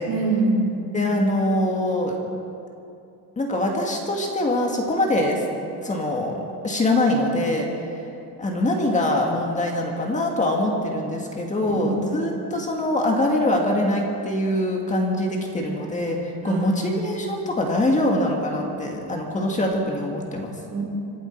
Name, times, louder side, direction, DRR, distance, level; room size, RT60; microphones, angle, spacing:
voice 1, 0.1-0.8 11.6-12.2 16.4-16.8 20.7-20.8, right 2 dB, 80° right, -4 dB, 4.4 m, -24 dB
voice 2, 0.9-2.2 3.4-5.4 5.8-7.7 8.4-20.6, left 1 dB, 20° left, 0 dB, 1.8 m, -23 dB
25.0 x 12.0 x 4.5 m, 2.6 s
cardioid pair, 160°, 39 cm